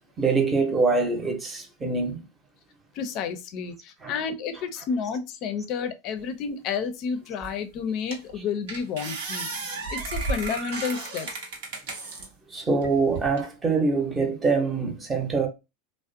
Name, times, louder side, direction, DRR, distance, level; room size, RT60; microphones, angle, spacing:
voice 1, 0.2-2.3 4.0-4.7 12.5-15.5, right 4 dB, 15° right, 0.7 m, -25 dB
voice 2, 2.9-9.5 9.9-11.3, left 6 dB, 50° left, 0.5 m, -31 dB
sound 1, 7.4-7.5 8.1-8.3 8.7-12.3 12.8-13.5, right 3 dB, 75° right, 0.8 m, -33 dB
2.4 x 2.0 x 2.5 m
supercardioid pair, 120°, 0 cm